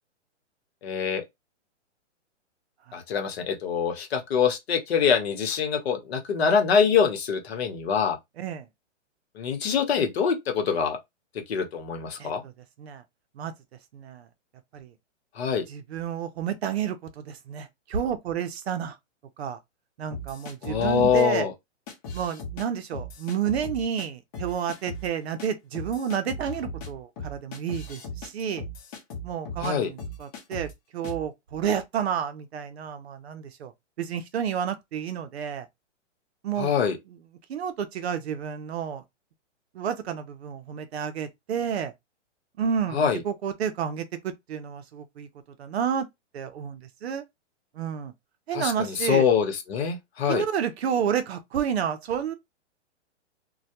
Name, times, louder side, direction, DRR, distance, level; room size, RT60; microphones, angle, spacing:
voice 1, 0.8-1.2 2.9-8.2 9.4-11.0 11.5-12.4 15.4-15.7 20.6-21.5 29.6-29.9 36.6-37.0 42.9-43.2 48.5-50.4, left 7 dB, 55° left, 0.9 m, -24 dB
voice 2, 12.2-12.5 12.8-13.0 13.4-13.5 13.9-14.3 14.7-14.9 15.7-19.0 19.4-19.6 20.0-21.5 22.1-28.7 29.2-33.7 34.0-35.7 36.4-36.7 37.5-39.0 39.7-41.9 42.6-45.3 45.6-46.1 46.3-47.2 47.7-48.1 48.5-49.2 50.3-52.3, right 8 dB, 60° right, 0.6 m, -30 dB
sound 1, 20.1-21.2 21.9-22.7 22.9-24.1 24.3-25.1 25.4-25.5 25.7-29.7 30.0-30.7 31.0-31.3, left 1 dB, 30° left, 0.8 m, -38 dB
2.2 x 2.1 x 2.8 m
hypercardioid pair, 155°, 37 cm